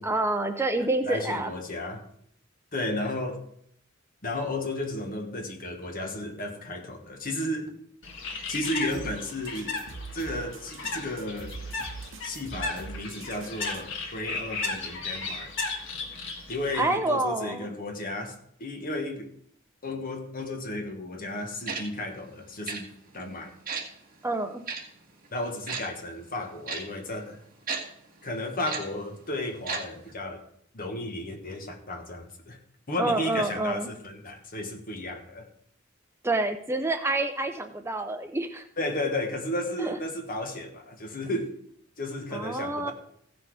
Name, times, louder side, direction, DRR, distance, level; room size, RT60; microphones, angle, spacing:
voice 1, 0.0-1.5 16.7-17.7 24.2-24.6 33.0-33.9 36.2-38.7 39.8-40.0 42.3-42.9, right 2 dB, 15° right, 7 dB, 0.5 m, -28 dB
voice 2, 1.0-2.0 2.7-3.5 4.2-7.7 8.5-9.8 10.1-11.5 12.2-15.5 16.5-19.3 19.8-22.9 23.1-23.5 25.3-27.4 28.2-30.4 30.7-32.6 32.9-35.5 38.8-41.5 42.0-42.9, left 1 dB, 45° left, 4 dB, 1.5 m, -33 dB
Bird, 8.0-16.9, left 3 dB, 65° left, 1.8 m, -36 dB
sound 1, 8.9-13.8, right 4 dB, 70° right, 0.9 m, -42 dB
Tick-tock, 21.7-21.8 22.7-22.8 23.7-23.8 24.7-24.8 25.7-25.8 26.7-26.8 27.7-27.8 28.7-28.8 29.7-29.8 30.1-30.2, right 5 dB, 45° right, 1.8 m, -32 dB
15.5 x 6.1 x 4.9 m, 0.69 s
head